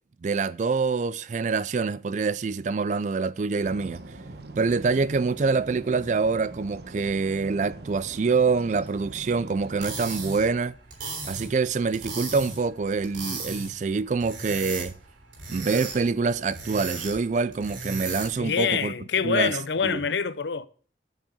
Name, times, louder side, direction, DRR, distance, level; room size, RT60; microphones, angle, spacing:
voice 1, 0.2-4.0 4.6-10.8 11.2-14.9 15.5-18.9 19.2-19.6 19.8-20.0, right 4 dB, 40° right, 0.3 m, -25 dB
sound 1, 3.6-10.6, right 2 dB, 60° right, 1.1 m, -42 dB
sound 2, 9.6-18.5, right 4 dB, 85° right, 3.5 m, -37 dB
voice 2, 18.4-20.7, left 6 dB, 70° left, 0.6 m, -26 dB
8.2 x 6.3 x 6.3 m
head